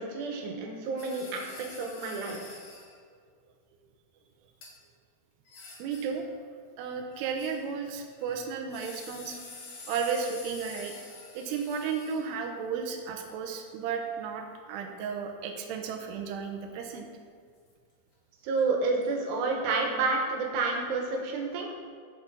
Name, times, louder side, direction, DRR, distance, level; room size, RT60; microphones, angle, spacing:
voice 1, 0.0-2.6 18.4-21.7, right 3 dB, 70° right, 0 dB, 3.0 m, -30 dB
sound 1, 1.0-3.0 4.6-4.7 5.5-6.3 7.1-7.8 8.1-12.5 18.6-18.7 19.0-19.1, left 3 dB, 55° left, 2.1 m, -47 dB
voice 2, 5.8-6.2 6.8-9.4 9.9-10.9 11.3-17.1, right 6 dB, 90° right, 2 dB, 2.3 m, -34 dB
16.0 x 5.6 x 4.0 m, 2.1 s
omnidirectional pair, 5.9 m